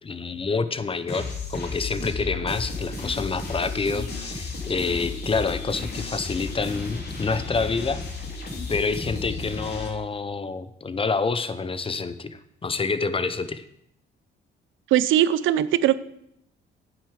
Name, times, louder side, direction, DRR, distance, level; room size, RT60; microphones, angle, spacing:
voice 1, 0.0-8.0 8.7-13.6, left 4 dB, 25° left, 13 dB, 0.7 m, -27 dB
sound 1, 1.1-9.9, left 3 dB, 55° left, 2.7 m, -33 dB
voice 2, 14.9-16.0, right 11 dB, 80° right, 16 dB, 0.5 m, -20 dB
9.4 x 7.9 x 4.9 m, 0.75 s
cardioid pair, 90°, 20 cm